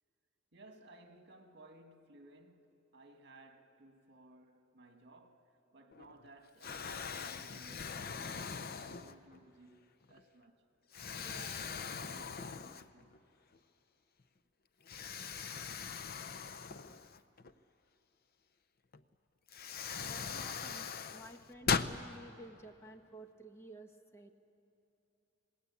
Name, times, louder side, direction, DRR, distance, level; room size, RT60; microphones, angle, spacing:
voice 1, 0.5-10.7 11.2-13.2, right 2 dB, 60° right, 2.0 m, -59 dB
Explosion, 5.9-6.3 6.6-9.4 10.0-10.2 10.9-13.2 13.5-13.6 14.9-17.5 18.9-19.0 19.5-22.0, left 6 dB, 50° left, 0.7 m, -40 dB
voice 2, 20.0-24.3, right 1 dB, 15° left, 1.1 m, -53 dB
27.0 x 19.5 x 8.5 m
head